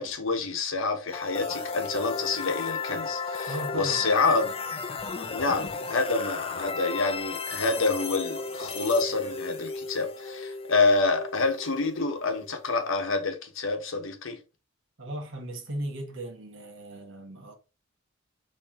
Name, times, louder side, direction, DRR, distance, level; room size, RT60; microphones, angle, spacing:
voice 1, 0.0-4.5 5.3-14.4, left 3 dB, 65° left, 0.9 m, -27 dB
sound 1, 1.1-12.9, left 4 dB, 30° left, 0.5 m, -35 dB
voice 2, 3.5-4.5 15.0-17.5, right 1 dB, 65° right, 1.3 m, -37 dB
4.4 x 3.2 x 3.6 m
head